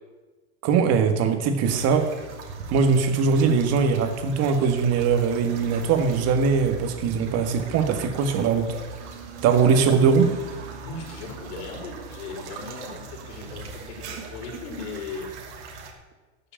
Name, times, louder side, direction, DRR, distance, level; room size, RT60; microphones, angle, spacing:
voice 1, 0.6-2.1 2.7-8.7 9.4-10.3, right 5 dB, 45° right, 7 dB, 1.8 m, -21 dB
sound 1, 1.6-15.9, right 3 dB, 85° right, 2.6 m, -40 dB
voice 2, 10.8-15.3, left 4 dB, 75° left, -2 dB, 4.9 m, -38 dB
12.5 x 6.7 x 8.7 m, 1.3 s
supercardioid pair, 140°, 34 cm